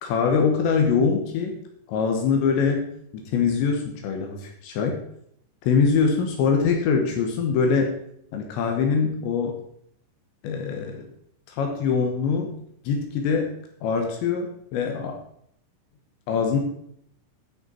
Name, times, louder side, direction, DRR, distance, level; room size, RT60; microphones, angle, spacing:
voice 1, 0.0-1.6 1.9-2.9 3.1-5.0 5.6-7.9 8.3-9.6 10.4-11.1 11.5-12.5 12.8-13.5 13.8-15.2 16.3-16.6, left 5 dB, 75° left, 3 dB, 3.0 m, -23 dB
11.0 x 6.6 x 4.4 m, 0.70 s
omnidirectional pair, 5.9 m